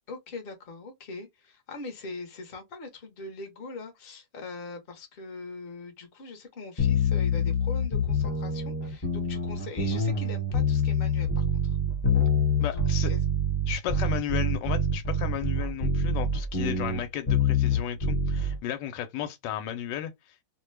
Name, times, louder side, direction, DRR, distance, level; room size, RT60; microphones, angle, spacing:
voice 1, 0.1-11.8 12.7-12.8 13.1-13.2 13.8-14.1, left 3 dB, 40° left, 0.8 m, -41 dB
sound 1, 6.8-18.6, left 2 dB, 25° left, 1.2 m, -26 dB
voice 2, 12.6-13.1 13.7-20.4, left 11 dB, 80° left, 1.2 m, -34 dB
2.8 x 2.2 x 3.2 m
omnidirectional pair, 1.9 m